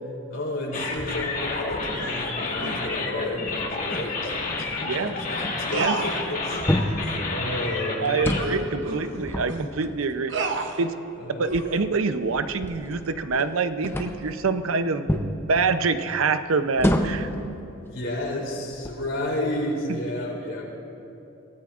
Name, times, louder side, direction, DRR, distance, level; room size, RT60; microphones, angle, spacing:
voice 1, 0.0-8.6 11.1-11.6 17.9-20.6, left 1 dB, 70° left, -2 dB, 3.3 m, -31 dB
sound 1, 0.7-8.5, left 3 dB, 35° left, 1.5 m, -30 dB
sound 2, 0.8-1.1 2.0-2.2 2.6-2.9 3.9-4.1 4.4-4.6 4.9-5.1 5.7-6.7 7.0-7.2 7.6-7.7 8.2-9.7 10.3-10.8 11.4-11.8, right 3 dB, 60° right, 0.9 m, -31 dB
voice 2, 4.8-5.1 5.7-6.0 8.0-10.3 10.8-11.0 11.4-17.3 19.9-20.0, right 4 dB, 85° right, 10 dB, 0.6 m, -26 dB
sound 3, 6.7-7.1 8.1-8.6 9.0-10.1 10.8-10.9 11.5-13.5 13.8-14.3 15.1-15.4 16.8-17.4 18.1-18.2 18.7-19.2, left 1 dB, 10° left, 0.6 m, -27 dB
23.0 x 16.5 x 2.5 m, 2.8 s
head